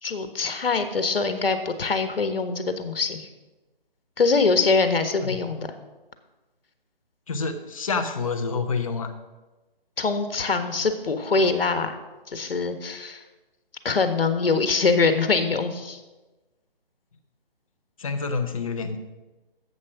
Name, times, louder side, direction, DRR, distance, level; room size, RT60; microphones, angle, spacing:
voice 1, 0.0-3.3 4.2-5.7 10.0-12.0 12.3-13.2 13.8-16.0, left 4 dB, 75° left, 8 dB, 1.5 m, -23 dB
voice 2, 7.3-9.1 18.0-19.0, left 4 dB, 35° left, 6 dB, 1.0 m, -28 dB
11.0 x 7.8 x 5.9 m, 1.1 s
hypercardioid pair, 165°, 29 cm